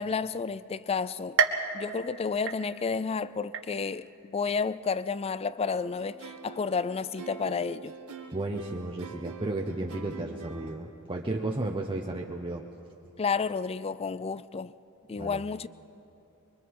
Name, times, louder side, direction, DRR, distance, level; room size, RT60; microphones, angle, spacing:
voice 1, 0.0-1.4 1.7-7.9 13.2-14.7 15.1-15.7, left 5 dB, 25° left, 0.4 m, -31 dB
sound 1, 1.4-3.1 3.5-4.1 4.6-4.7 5.7-5.8, right 5 dB, 55° right, 1.1 m, -31 dB
sound 2, 5.7-10.8, right 5 dB, 75° right, 1.8 m, -45 dB
voice 2, 8.3-12.6 15.2-15.4, right 2 dB, 25° right, 0.8 m, -33 dB
24.5 x 23.0 x 4.7 m
head